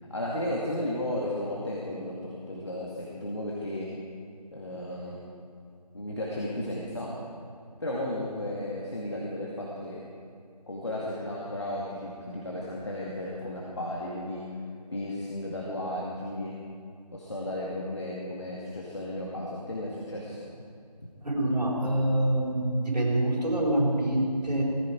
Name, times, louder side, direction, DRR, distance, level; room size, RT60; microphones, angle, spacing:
voice 1, 0.1-3.9 4.5-5.2 5.9-7.1 7.8-10.0 10.7-14.4 14.9-16.5 17.1-20.5, left 1 dB, 45° left, -4 dB, 2.2 m, -34 dB
voice 2, 21.2-24.6, right 1 dB, 85° right, -6 dB, 4.6 m, -26 dB
19.5 x 14.5 x 4.6 m, 2.3 s
figure-of-eight pair, 175°, 21 cm